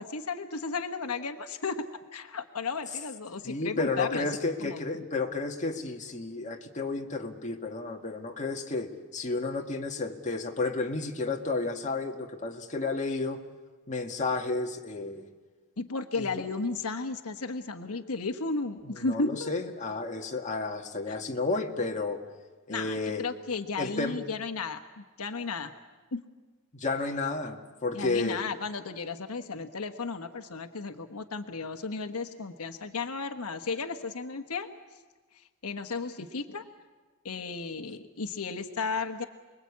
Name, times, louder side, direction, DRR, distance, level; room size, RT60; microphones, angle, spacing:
voice 1, 0.0-1.8 2.1-4.3 4.6-5.0 15.8-19.5 21.1-21.2 22.7-25.7 26.1-26.2 27.9-34.7 35.3-36.7 37.2-39.2, left 4 dB, 80° left, 7 dB, 1.2 m, -34 dB
voice 2, 3.4-13.4 13.9-15.2 19.0-22.2 22.7-23.2 23.8-24.2 26.7-28.4, left 3 dB, 35° left, 2 dB, 1.8 m, -32 dB
29.0 x 21.0 x 8.5 m, 1.3 s
head